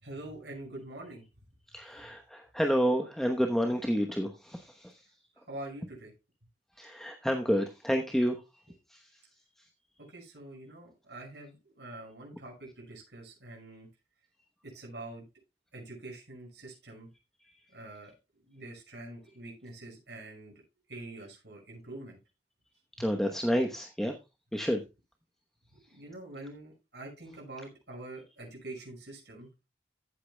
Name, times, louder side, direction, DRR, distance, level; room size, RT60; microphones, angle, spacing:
voice 1, 0.0-1.2 5.5-6.1 10.0-13.9 14.6-15.2 15.7-17.1 17.7-18.1 18.5-20.5 20.9-22.2 25.7-29.5, right 2 dB, 70° right, -1 dB, 5.7 m, -45 dB
voice 2, 1.7-5.0 6.8-8.4 8.9-9.0 23.0-24.1 24.5-24.8, equal, ahead, 3 dB, 0.9 m, -29 dB
14.5 x 8.4 x 2.2 m, 0.26 s
head